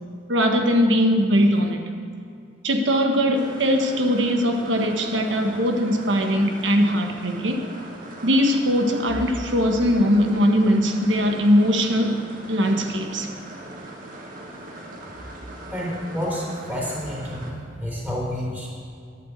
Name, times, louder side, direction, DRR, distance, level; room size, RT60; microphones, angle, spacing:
voice 1, 0.3-1.8 2.6-7.6 8.2-12.2 12.5-13.3, equal, 70° right, 4 dB, 1.4 m, -20 dB
sound 1, 3.3-17.5, right 1 dB, 50° right, 2.0 m, -40 dB
voice 2, 15.7-18.7, equal, 10° right, -5 dB, 3.8 m, -29 dB
11.0 x 8.1 x 8.2 m, 2.3 s
head